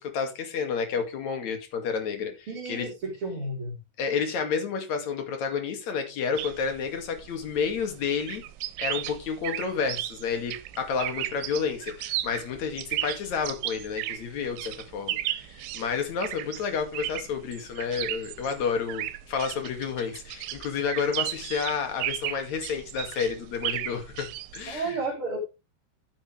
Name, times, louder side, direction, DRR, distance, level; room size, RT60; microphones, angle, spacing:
voice 1, 0.0-2.9 4.0-8.4 8.8-25.0, left 6 dB, 45° left, 5 dB, 2.9 m, -30 dB
voice 2, 2.5-3.7 24.7-25.4, right 3 dB, 30° right, -3 dB, 4.0 m, -32 dB
sound 1, 6.4-24.8, right 14 dB, 85° right, 3.2 m, -35 dB
12.5 x 9.9 x 3.4 m, 0.27 s
omnidirectional pair, 5.5 m